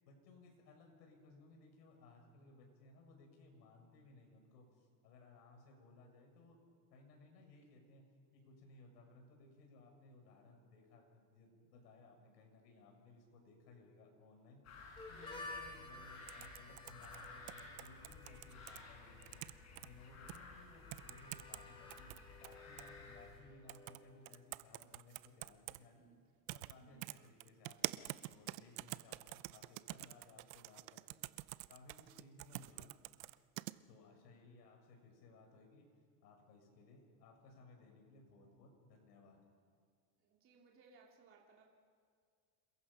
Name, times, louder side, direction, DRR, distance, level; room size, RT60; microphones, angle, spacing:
voice 1, 0.0-8.1 8.3-14.6 15.1-19.4 19.8-26.0 26.5-31.2 31.7-32.9 33.9-35.9 36.2-39.4, left 3 dB, 90° left, 2 dB, 6.9 m, -61 dB
sound 1, 14.6-23.4, left 4 dB, 35° left, 5.8 m, -55 dB
Harmonica, 15.0-24.6, left 2 dB, 10° left, 2.6 m, -55 dB
sound 2, 16.3-18.8 19.2-19.9 20.3-20.4 20.9-21.6 21.9-22.9 23.7-24.0 24.3-25.8 26.5-26.7 27.0-33.7, right 20 dB, 60° right, 0.7 m, -46 dB
voice 2, 26.8-27.1 40.2-41.7, right 5 dB, 25° right, -1 dB, 2.9 m, -65 dB
27.5 x 22.0 x 5.7 m, 2.1 s
supercardioid pair, 160°, 48 cm